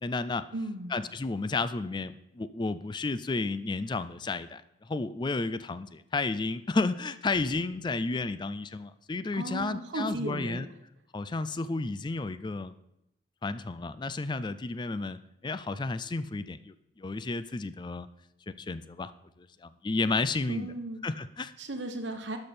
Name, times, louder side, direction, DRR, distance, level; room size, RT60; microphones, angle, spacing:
voice 1, 0.0-0.5 0.9-10.7 11.1-12.7 13.4-18.1 18.5-19.1 19.4-20.7 21.0-21.5, left 3 dB, 25° left, 14 dB, 0.4 m, -32 dB
voice 2, 0.5-0.9 9.3-10.6 20.5-21.0 21.6-22.4, right 2 dB, 80° right, 6 dB, 1.2 m, -35 dB
11.5 x 6.8 x 4.3 m, 0.83 s
head